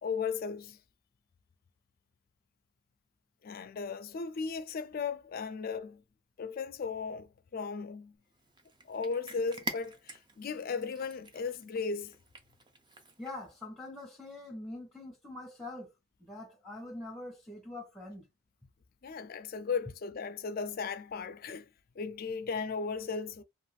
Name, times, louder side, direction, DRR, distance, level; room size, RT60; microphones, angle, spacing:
voice 1, 0.0-0.8 3.4-6.0 6.4-8.1 8.8-12.1 19.0-21.6 22.0-23.4, left 5 dB, 45° left, 0.4 m, -36 dB
Cat, 8.3-13.5, right 1 dB, 20° right, 0.4 m, -46 dB
voice 2, 13.2-15.9 16.3-18.2, left 2 dB, ahead, 0.8 m, -44 dB
2.4 x 2.4 x 3.1 m
head